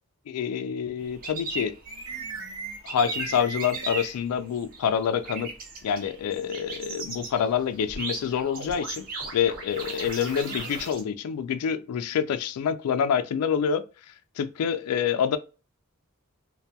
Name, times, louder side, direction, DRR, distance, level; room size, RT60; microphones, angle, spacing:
voice 1, 0.3-1.7 2.8-5.5 5.8-9.1 9.3-13.8 14.4-15.4, left 7 dB, 90° left, 0.3 m, -27 dB
sound 1, 1.0-2.4 2.7-11.0, right 3 dB, 40° right, 0.6 m, -37 dB
sound 2, 1.9-4.2 7.9-10.9, right 3 dB, 55° right, 1.0 m, -39 dB
2.2 x 2.2 x 2.6 m
head